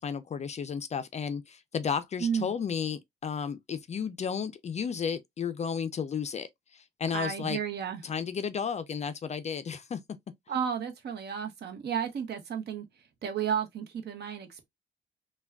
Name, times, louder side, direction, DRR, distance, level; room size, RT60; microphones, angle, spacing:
voice 1, 0.0-6.5 6.7-7.6 8.0-10.0, left 6 dB, 35° left, 0.4 m, -33 dB
voice 2, 2.2-2.5 7.1-8.0 10.5-12.8 13.2-14.7, right 7 dB, 55° right, 0.8 m, -32 dB
3.3 x 2.2 x 2.3 m
cardioid pair, 90°, 20 cm